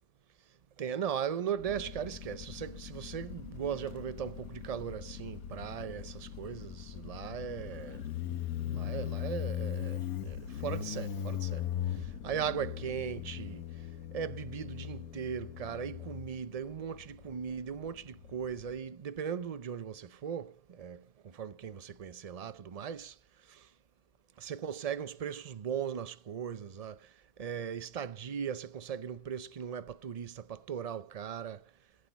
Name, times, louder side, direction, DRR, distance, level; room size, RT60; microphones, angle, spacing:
voice 1, 0.8-8.1 8.6-11.7 11.9-13.7 14.1-23.2 23.5-23.7 24.4-31.6, right 8 dB, 45° right, 0.4 m, -38 dB
Motorcycle, 1.6-18.8, left 10 dB, 90° left, 1.4 m, -40 dB
15.5 x 8.1 x 4.2 m
omnidirectional pair, 1.5 m